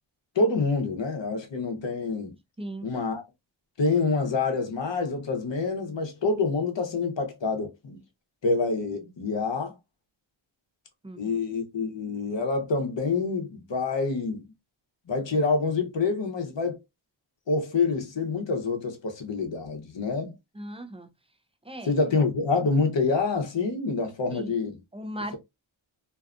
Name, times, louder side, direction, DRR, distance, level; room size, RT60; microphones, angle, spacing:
voice 1, 0.3-2.3 2.8-3.2 3.8-8.0 8.4-9.8 11.2-14.4 15.1-16.8 17.5-20.3 21.8-24.8, left 4 dB, 65° left, 0.9 m, -27 dB
voice 2, 11.0-11.4 20.5-21.1 21.6-21.9 24.3-24.5 24.9-25.4, right 1 dB, 10° right, 0.5 m, -37 dB
2.7 x 2.3 x 2.4 m
wide cardioid pair, 75°, 48 cm